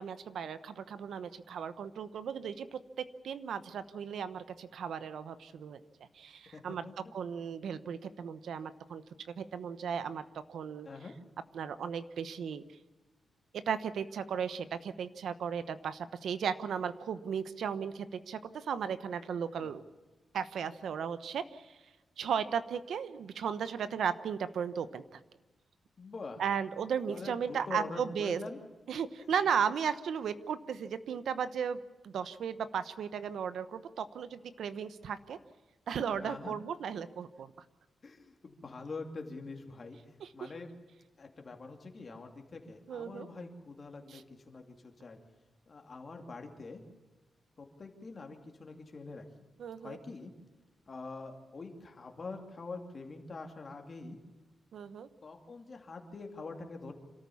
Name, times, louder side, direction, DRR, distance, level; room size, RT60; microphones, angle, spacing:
voice 1, 0.0-2.8 3.2-5.8 6.1-6.8 7.1-9.0 9.4-10.2 10.5-10.9 11.5-12.6 13.5-19.8 20.3-21.8 22.2-25.2 26.4-28.4 28.9-35.4 35.9-37.5 40.2-40.5 42.9-43.3 44.1-44.2 49.6-50.0 54.7-55.1, right 7 dB, 80° right, 13 dB, 1.0 m, -35 dB
voice 2, 6.5-6.9 10.8-11.1 19.5-19.7 26.0-26.4 27.1-28.6 29.2-29.3 29.6-29.7 36.2-36.5 38.0-40.0 40.3-40.7 41.2-45.2 45.7-46.8 47.6-49.2 49.8-50.3 50.9-54.2 55.2-56.9, left 3 dB, 35° left, 3 dB, 2.6 m, -45 dB
27.0 x 13.5 x 7.1 m, 1.2 s
wide cardioid pair, 150°, 0 cm